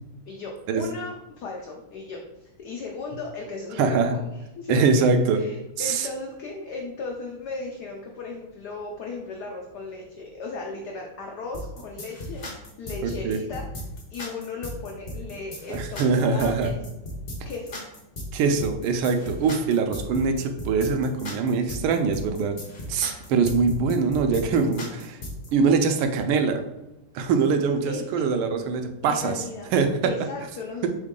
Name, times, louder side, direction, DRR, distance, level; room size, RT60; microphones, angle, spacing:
voice 1, 0.3-4.0 4.3-5.0 5.3-12.5 12.8-13.6 14.1-16.7 17.4-17.8 27.9-28.4 29.0-29.7 30.0-30.9, left 3 dB, 90° left, 0 dB, 0.8 m, -36 dB
voice 2, 3.8-4.2 4.7-5.4 5.8-6.1 13.0-13.4 15.7-16.7 18.3-22.6 22.9-25.2 25.5-26.6 27.1-29.4 29.7-30.1, right 5 dB, 80° right, 6 dB, 1.4 m, -23 dB
sound 1, 11.5-25.5, left 1 dB, 65° left, 0.5 m, -36 dB
4.0 x 3.6 x 3.6 m, 0.95 s
omnidirectional pair, 2.4 m